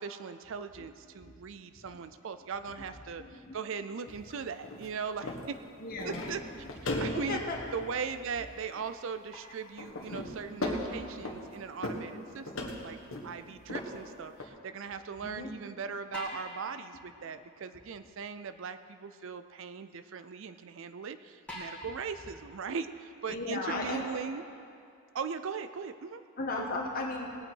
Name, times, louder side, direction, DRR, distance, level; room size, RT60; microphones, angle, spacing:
voice 1, 0.0-3.2 3.5-5.6 6.0-6.4 6.8-7.4 7.7-13.0 13.2-14.3 14.6-22.9 23.2-24.4 25.1-26.2 26.6-26.7, right 5 dB, 60° right, 10 dB, 0.4 m, -39 dB
voice 2, 3.2-3.6 5.8-6.2 7.0-7.6 10.9-11.0 15.2-15.5 23.3-24.0 26.4-27.3, left 2 dB, 40° left, -1 dB, 1.4 m, -36 dB
sound 1, 4.1-4.2 4.6-4.9 5.2-5.5 6.0-8.4 8.8-8.9 9.8-11.6 11.8-12.2 12.5-13.3 13.7-13.9 14.4-14.5, left 1 dB, 65° left, 1.5 m, -37 dB
sound 2, 9.3-10.5 13.4-13.5 16.1-19.0 19.4-19.5 20.6-20.7 21.5-24.3 24.8-24.9 25.9-26.0, left 1 dB, 5° left, 2.2 m, -49 dB
18.5 x 8.9 x 4.6 m, 2.4 s
head